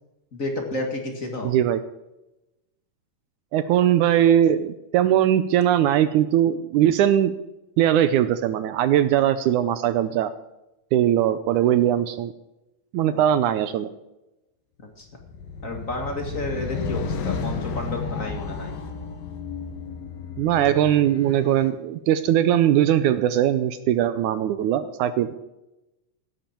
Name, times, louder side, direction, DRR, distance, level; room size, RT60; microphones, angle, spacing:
voice 1, 0.3-1.6 13.1-13.2 15.0-15.1 15.6-18.8, left 2 dB, 35° left, 3 dB, 1.5 m, -31 dB
voice 2, 1.4-1.8 3.5-7.3 7.8-10.3 10.9-12.3 12.9-13.9 20.4-25.3, right 11 dB, 80° right, 12 dB, 1.9 m, -20 dB
sound 1, 15.1-21.6, left 5 dB, 80° left, 3.3 m, -32 dB
16.5 x 12.5 x 4.5 m, 0.96 s
omnidirectional pair, 4.0 m